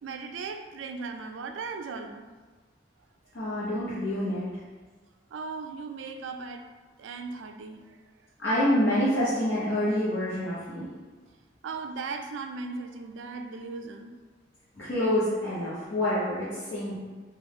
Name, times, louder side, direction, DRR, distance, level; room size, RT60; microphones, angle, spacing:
voice 1, 0.0-2.3 5.3-6.7 7.0-8.0 11.6-14.2, right 4 dB, 85° right, 6 dB, 0.3 m, -37 dB
voice 2, 3.3-4.5 8.4-10.9 14.8-17.0, left 1 dB, 75° left, -11 dB, 1.1 m, -27 dB
3.4 x 2.3 x 3.5 m, 1.4 s
head